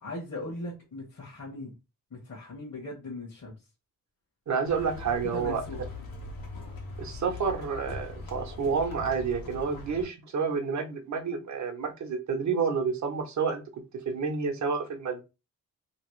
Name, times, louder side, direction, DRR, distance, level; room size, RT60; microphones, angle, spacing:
voice 1, 0.0-1.8 2.1-3.5 4.9-5.8, left 2 dB, 50° left, 1.2 m, -39 dB
voice 2, 4.5-5.6 7.0-13.6 14.1-15.2, right 5 dB, 55° right, 0.9 m, -29 dB
sound 1, 4.6-10.1, left 3 dB, 90° left, 1.2 m, -41 dB
3.0 x 2.9 x 3.1 m
cardioid pair, 100°, 34 cm